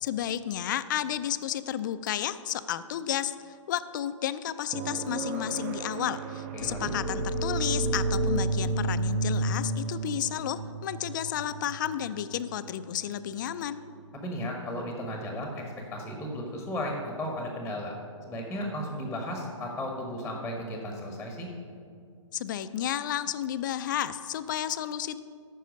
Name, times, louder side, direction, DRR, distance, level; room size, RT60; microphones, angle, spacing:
voice 1, 0.0-13.8 22.3-25.2, left 11 dB, 40° left, 13 dB, 0.4 m, -32 dB
sound 1, 4.7-18.6 20.8-20.9, right 6 dB, 20° right, 0.6 m, -43 dB
voice 2, 6.5-6.9 14.2-15.6 15.9-17.9 18.3-21.5, left 1 dB, ahead, 1 dB, 0.9 m, -35 dB
sound 2, 6.5-12.1, right 2 dB, 90° right, 1.8 m, -30 dB
14.0 x 5.6 x 5.1 m, 2.4 s
hypercardioid pair, 150°, 17 cm